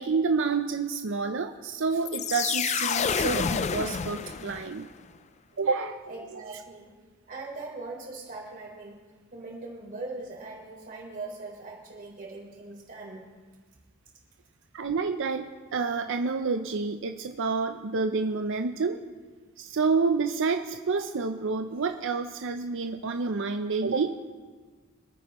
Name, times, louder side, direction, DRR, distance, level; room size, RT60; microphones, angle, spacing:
voice 1, 0.0-4.9 5.6-6.0 6.3-6.4 14.7-19.0 19.6-24.2, right 4 dB, 60° right, 6 dB, 0.6 m, -28 dB
sound 1, 2.1-4.9, left 6 dB, 30° left, 0.4 m, -28 dB
voice 2, 6.1-6.9 7.3-9.0 9.3-13.3, right 3 dB, 40° right, -2 dB, 3.8 m, -41 dB
26.0 x 9.6 x 3.0 m, 1.4 s
head